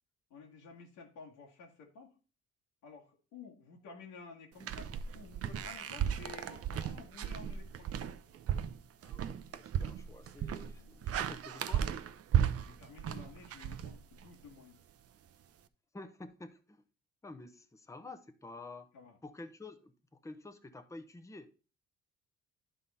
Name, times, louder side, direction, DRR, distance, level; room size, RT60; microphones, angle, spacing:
voice 1, 0.3-2.2 2.8-8.0 10.8-11.1 12.6-14.8 18.9-19.1, left 5 dB, 90° left, 1.8 m, -53 dB
sound 1, 4.6-14.5, right 9 dB, 50° right, 0.6 m, -35 dB
voice 2, 9.0-11.9 15.9-16.8 17.2-18.9 19.2-21.5, left 2 dB, 10° left, 0.7 m, -50 dB
11.0 x 3.8 x 4.1 m
cardioid pair, 90°, 30 cm